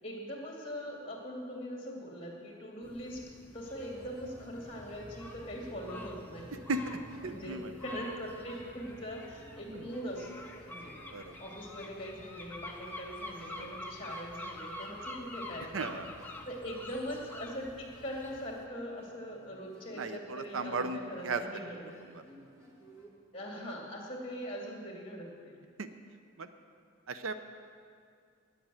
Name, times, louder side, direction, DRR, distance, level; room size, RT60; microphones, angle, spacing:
voice 1, 0.0-3.2 3.5-6.6 7.2-7.6 7.8-10.9 11.4-16.0 16.5-21.8 23.3-25.6, equal, 30° left, -1 dB, 2.3 m, -41 dB
sound 1, 2.8-18.6, left 1 dB, 10° left, 0.7 m, -47 dB
sound 2, 3.7-23.1, equal, 15° right, 2.2 m, -58 dB
voice 2, 6.7-7.7 9.7-9.9 11.1-11.4 13.5-13.7 15.7-16.1 20.0-21.4 22.0-22.2 23.5-23.7 25.8-25.9 26.4-26.5 27.1-27.3, right 3 dB, 90° right, 10 dB, 0.6 m, -36 dB
10.0 x 8.1 x 9.1 m, 2.2 s
head